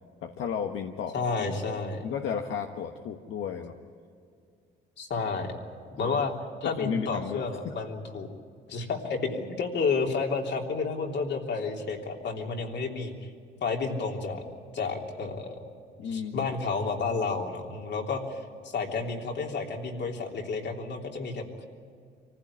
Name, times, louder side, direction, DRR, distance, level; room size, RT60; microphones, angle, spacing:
voice 1, 0.2-1.6 2.0-3.7 6.0-6.2 6.6-7.7 16.0-16.5, left 7 dB, 80° left, 3 dB, 1.3 m, -33 dB
voice 2, 1.1-2.0 5.0-5.6 6.0-6.3 6.6-8.3 8.7-13.1 13.6-14.4 14.7-15.6 16.0-21.7, left 4 dB, 65° left, 1 dB, 3.3 m, -31 dB
25.0 x 15.5 x 9.8 m, 2.3 s
cardioid pair, 90°, 20 cm